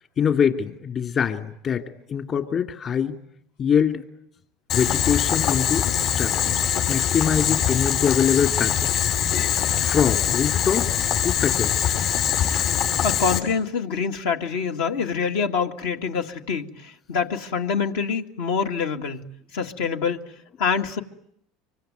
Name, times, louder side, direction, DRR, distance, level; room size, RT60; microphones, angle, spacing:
voice 1, 0.2-3.2 3.6-4.0 4.7-6.6 6.9-8.9 9.8-11.9, left 7 dB, 45° left, 5 dB, 2.7 m, -24 dB
Boiling, 4.7-13.4, left 9 dB, 60° left, 6.5 m, -23 dB
voice 2, 13.0-19.2 19.5-20.2 20.6-21.0, left 5 dB, 80° left, 4 dB, 2.0 m, -25 dB
25.5 x 24.0 x 9.3 m, 0.71 s
supercardioid pair, 95°, 0 cm